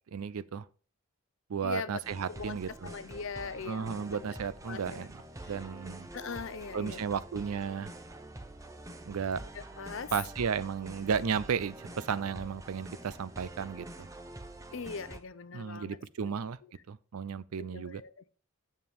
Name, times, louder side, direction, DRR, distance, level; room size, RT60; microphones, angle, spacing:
voice 1, 0.1-0.7 1.5-2.9 3.6-5.1 5.5-6.1 6.7-7.9 9.1-9.4 10.1-14.1 15.5-16.6 16.9-18.0, right 6 dB, 90° right, 0.5 m, -34 dB
voice 2, 1.6-2.0 2.3-4.4 4.7-5.1 6.1-7.0 9.5-10.1 14.7-16.3 17.6-18.1, left 5 dB, 60° left, 0.6 m, -41 dB
sound 1, 2.0-15.2, right 1 dB, 15° right, 0.6 m, -46 dB
9.4 x 7.4 x 3.5 m
head